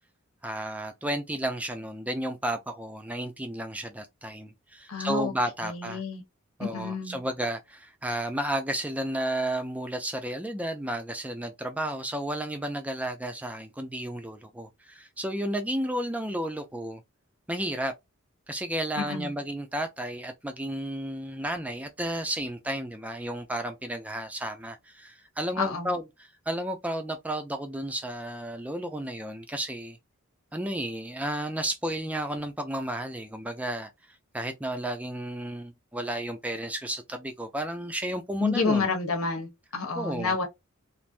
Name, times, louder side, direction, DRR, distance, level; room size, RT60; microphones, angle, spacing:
voice 1, 0.4-6.0 6.6-17.0 17.5-17.9 18.5-30.0 30.5-33.9 34.3-38.9 40.0-40.4, right 1 dB, 5° right, 0.3 m, -32 dB
voice 2, 4.9-5.3 5.6-6.2 6.6-7.2 19.0-19.3 25.6-25.9 38.4-40.4, left 4 dB, 85° left, 1.1 m, -29 dB
3.3 x 2.5 x 2.5 m
head